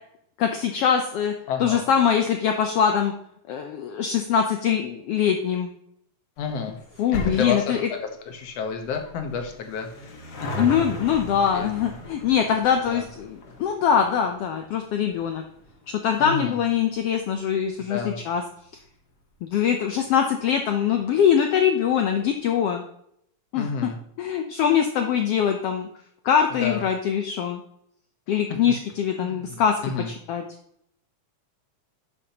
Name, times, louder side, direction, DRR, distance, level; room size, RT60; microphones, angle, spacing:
voice 1, 0.4-1.3 1.6-3.1 3.5-5.7 7.0-7.9 10.5-15.4 15.9-18.4 19.4-22.8 23.5-23.7 24.2-25.9 26.2-27.6 28.3-29.8 30.1-30.5, left 8 dB, 85° left, 4 dB, 1.3 m, -23 dB
voice 2, 1.5-1.8 6.4-6.8 7.1-7.7 8.3-10.1 11.5-11.7 12.9-13.0 16.2-16.6 17.9-18.2 23.5-24.0 26.5-26.8 28.3-28.4 29.2-30.1, left 5 dB, 65° left, 5 dB, 1.8 m, -30 dB
sound 1, 6.4-19.1 19.4-19.5 20.4-20.5 20.7-20.8 21.1-21.2, equal, 45° left, 1.3 m, -39 dB
10.5 x 7.3 x 2.9 m, 0.71 s
omnidirectional pair, 3.6 m